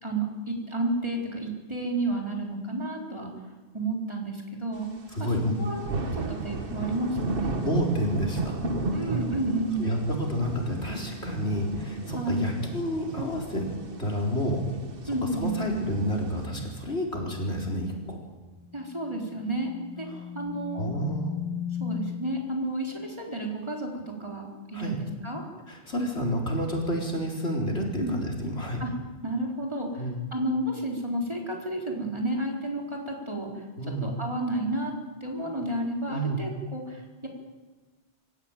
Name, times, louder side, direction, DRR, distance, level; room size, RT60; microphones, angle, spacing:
voice 1, 0.0-3.3 3.7-4.9 5.2-5.3 5.6-5.8 6.1-7.6 8.9-9.9 12.1-12.5 15.1-15.5 18.7-19.7 20.0-20.1 20.3-20.9 21.8-23.9 24.2-25.4 28.0-28.1 28.8-28.9 29.2-34.9 35.2-37.3, right 1 dB, 25° right, -1 dB, 4.2 m, -31 dB
voice 2, 5.1-5.6 7.6-8.6 9.8-13.7 14.0-14.6 15.4-18.2 20.1-20.3 20.7-21.4 24.7-25.0 25.7-28.8 30.0-30.2 33.8-34.1 36.1-36.4, equal, 70° left, 0 dB, 4.5 m, -29 dB
sound 1, 5.1-5.2 5.4-16.5, right 3 dB, 55° right, 1.6 m, -34 dB
sound 2, 18.5-22.4, left 9 dB, 35° left, 2.1 m, -37 dB
26.0 x 14.0 x 9.1 m, 1.3 s
omnidirectional pair, 1.2 m